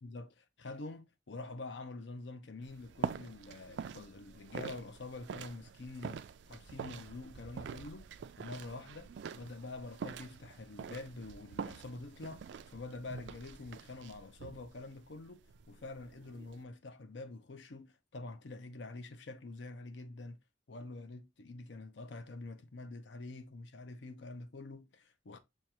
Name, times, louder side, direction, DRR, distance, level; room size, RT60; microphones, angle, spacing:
voice 1, 0.0-8.1 8.4-20.4 20.7-25.4, left 2 dB, 75° left, 0.6 m, -46 dB
sound 1, 2.6-16.6, right 6 dB, 70° right, 0.3 m, -45 dB
6.3 x 2.4 x 2.8 m
head